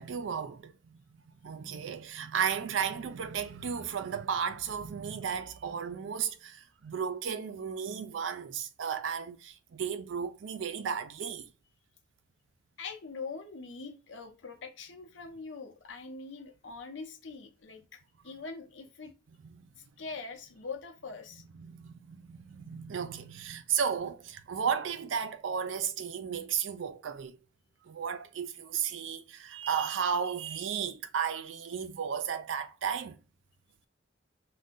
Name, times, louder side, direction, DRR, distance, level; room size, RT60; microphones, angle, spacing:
voice 1, 0.0-11.5 19.4-19.7 21.5-27.4 27.8-33.2, right 7 dB, 85° right, 0.4 m, -34 dB
voice 2, 12.8-19.1 19.8-21.4, left 4 dB, 75° left, 0.7 m, -43 dB
2.6 x 2.2 x 3.7 m
head